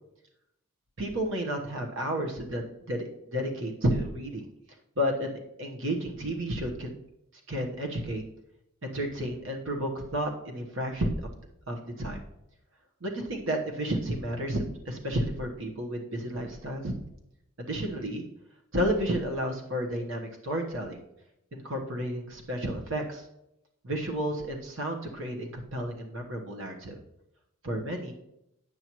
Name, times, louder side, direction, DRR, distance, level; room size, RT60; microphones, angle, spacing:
voice 1, 1.0-4.5 5.0-6.9 7.5-8.2 8.8-11.2 11.7-12.2 13.0-16.9 17.6-18.2 18.7-21.0 21.5-23.2 23.8-27.0 27.6-28.1, equal, 55° right, 1 dB, 1.1 m, -31 dB
9.5 x 7.7 x 3.0 m, 0.82 s
head